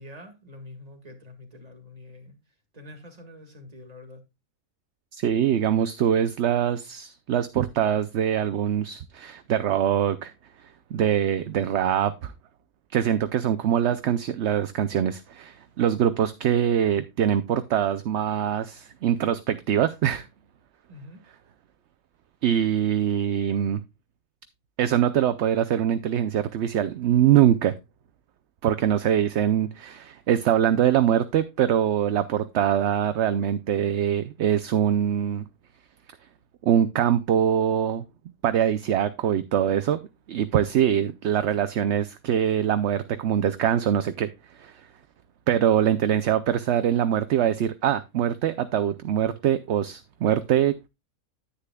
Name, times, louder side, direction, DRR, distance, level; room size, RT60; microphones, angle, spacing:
voice 1, 0.0-2.4 2.7-4.2 20.9-21.2, left 1 dB, 25° right, 1.9 m, -45 dB
voice 2, 5.1-10.3 10.6-12.3 12.9-20.3 22.4-23.8 24.8-27.7 28.6-35.5 36.6-38.0 38.4-40.0 40.3-44.3 44.6-44.9 45.5-50.9, right 10 dB, 65° right, 0.8 m, -23 dB
9.9 x 9.8 x 2.2 m
omnidirectional pair, 1.5 m